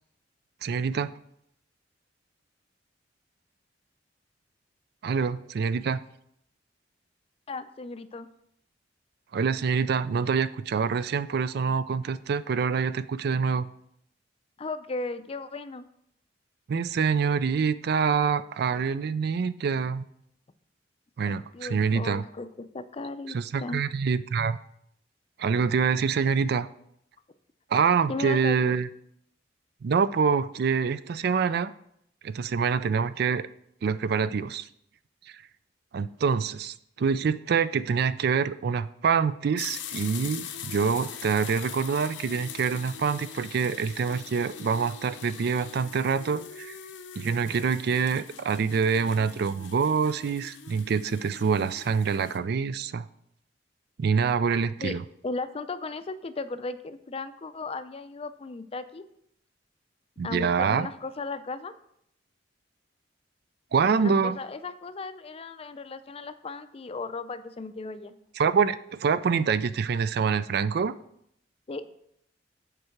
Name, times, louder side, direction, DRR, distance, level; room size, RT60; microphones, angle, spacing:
voice 1, 0.6-1.1 5.0-6.0 9.3-13.7 16.7-20.0 21.2-22.2 23.3-24.6 25.4-26.7 27.7-28.9 29.8-31.7 32.2-33.5 33.8-34.7 35.9-46.8 47.2-53.1 54.0-55.0 60.2-60.9 63.7-64.4 68.4-70.9, right 6 dB, 60° right, 15 dB, 0.4 m, -26 dB
voice 2, 7.5-8.3 14.6-15.8 21.3-23.9 28.1-28.7 54.8-55.0 55.2-59.0 60.2-61.7 63.8-68.1 71.7-71.9, left 3 dB, 30° left, 12 dB, 0.4 m, -36 dB
sound 1, 39.6-52.4, left 8 dB, 85° left, 0.8 m, -42 dB
8.0 x 4.6 x 5.8 m, 0.72 s
head